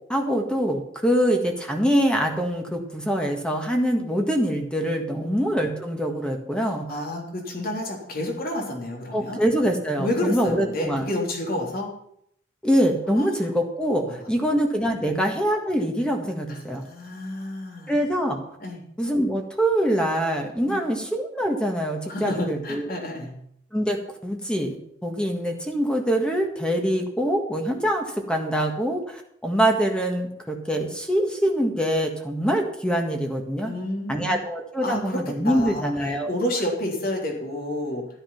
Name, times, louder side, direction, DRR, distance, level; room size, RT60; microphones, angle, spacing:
voice 1, 0.1-6.9 9.1-11.1 12.6-16.8 17.9-18.4 19.0-22.9 23.7-24.8 25.0-33.7 34.1-36.3, equal, 5° left, 2 dB, 1.7 m, -24 dB
voice 2, 6.9-9.4 10.0-11.9 13.1-13.3 14.0-14.1 15.0-15.3 16.5-17.9 18.6-18.8 20.6-20.8 22.1-23.3 33.6-34.4 34.8-35.9 36.2-38.1, left 1 dB, 55° left, 0 dB, 3.6 m, -30 dB
12.5 x 11.5 x 5.8 m, 0.71 s
head